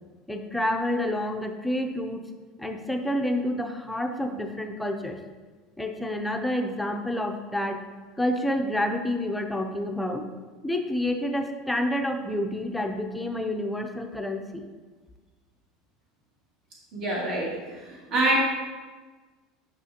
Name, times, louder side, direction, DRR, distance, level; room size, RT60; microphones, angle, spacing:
voice 1, 0.3-2.3 2.6-5.2 5.8-7.8 8.2-10.2 10.6-14.6, left 1 dB, 5° left, 4 dB, 0.6 m, -28 dB
voice 2, 16.9-18.4, right 2 dB, 50° right, -6 dB, 2.5 m, -26 dB
11.0 x 5.8 x 2.8 m, 1.3 s
supercardioid pair, 150°, 0 cm